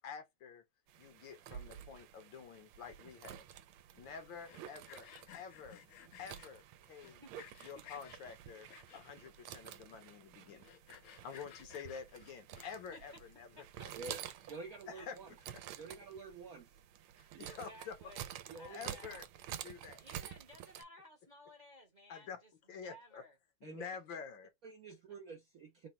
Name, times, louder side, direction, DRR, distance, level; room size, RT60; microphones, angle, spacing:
voice 1, 0.0-0.6 1.0-3.4 3.9-5.1 5.3-5.8 6.2-7.2 7.6-10.7 11.2-13.6 14.9-15.2 15.5-15.6 17.2-18.0 18.7-19.2 19.6-20.0 22.1-22.4 22.7-23.3 23.6-24.5, left 6 dB, 70° left, 1.4 m, -48 dB
sound 1, 0.9-20.8, right 11 dB, 85° right, 1.4 m, -50 dB
Sawing, 4.3-6.5 7.0-8.2 8.7-9.3 9.7-9.8 10.0-10.1 10.5-13.0, left 11 dB, 90° left, 1.6 m, -56 dB
voice 2, 13.6-13.9 14.7-15.1 17.4-18.3 18.5-19.2 20.0-23.4, left 1 dB, 35° right, 0.8 m, -57 dB
voice 3, 14.5-15.3 15.8-16.7 17.3-17.5 18.5-19.0 23.6-23.8 24.6-25.9, right 4 dB, 65° right, 0.8 m, -49 dB
4.0 x 2.2 x 4.2 m
omnidirectional pair, 2.3 m